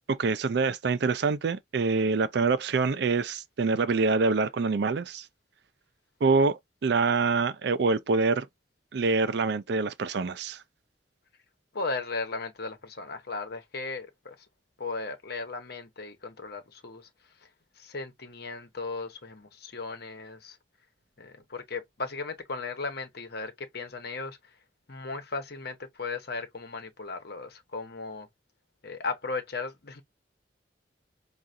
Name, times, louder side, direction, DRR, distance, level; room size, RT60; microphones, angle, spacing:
voice 1, 0.1-5.2 6.2-8.5 8.9-10.6, right 4 dB, 65° right, 0.4 m, -25 dB
voice 2, 11.7-14.3 14.8-17.1 17.8-20.6 21.2-24.4 24.9-28.3 28.8-30.0, left 3 dB, 60° left, 1.1 m, -36 dB
4.7 x 2.4 x 2.6 m
head